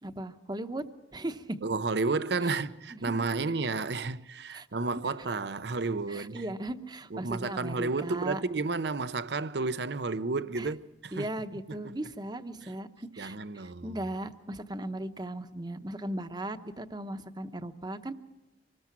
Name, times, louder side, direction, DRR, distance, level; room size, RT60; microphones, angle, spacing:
voice 1, 0.0-0.8 1.1-1.5 2.4-2.5 2.9-3.4 4.5-4.7 5.0-5.2 6.1-8.4 10.6-10.7 11.1-18.1, right 1 dB, 25° right, 0.9 m, -37 dB
voice 2, 1.6-6.4 7.1-11.3 12.6-12.7 13.2-14.0, right 3 dB, 65° right, 0.7 m, -31 dB
25.5 x 19.5 x 6.0 m
head